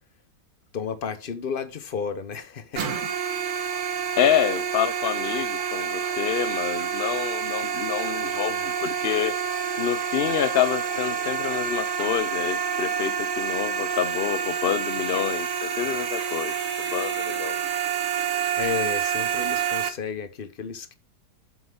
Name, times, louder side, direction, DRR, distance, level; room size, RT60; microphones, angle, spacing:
voice 1, 0.7-3.0 18.5-20.9, left 6 dB, 40° left, 0.8 m, -32 dB
sound 1, 2.8-19.9, right 7 dB, 55° right, 1.4 m, -28 dB
voice 2, 4.2-9.4 9.8-16.5 16.9-17.6, left 9 dB, 80° left, 0.5 m, -27 dB
sound 2, 5.4-6.5 7.0-7.3 8.0-9.3 9.7-9.9 10.4-11.6 12.1-12.2, right 1 dB, 10° left, 3.0 m, -45 dB
7.9 x 6.1 x 3.4 m
omnidirectional pair, 1.8 m